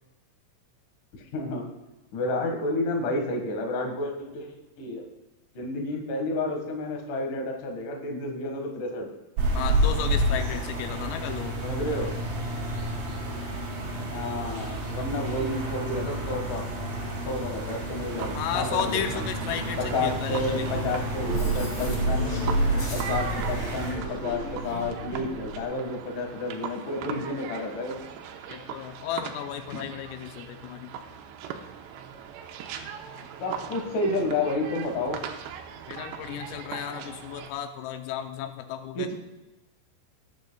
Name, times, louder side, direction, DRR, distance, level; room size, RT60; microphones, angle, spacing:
voice 1, 1.3-1.7 2.1-5.0 5.5-9.1 11.6-12.1 14.1-16.6 17.3-19.3 19.9-22.5 22.9-28.0 33.4-35.2 39.0-39.1, left 2 dB, 60° left, 2 dB, 2.3 m, -30 dB
sound 1, 9.4-23.9, right 1 dB, 50° right, 4.1 m, -31 dB
voice 2, 9.5-11.6 18.4-21.0 28.5-31.0 35.9-39.1, left 9 dB, 85° left, 7 dB, 3.3 m, -34 dB
sound 2, 18.1-37.5, right 8 dB, 90° right, 2.4 m, -40 dB
sound 3, 20.3-25.6, right 1 dB, 35° left, 1.9 m, -30 dB
19.0 x 9.6 x 2.3 m, 1.1 s
omnidirectional pair, 5.9 m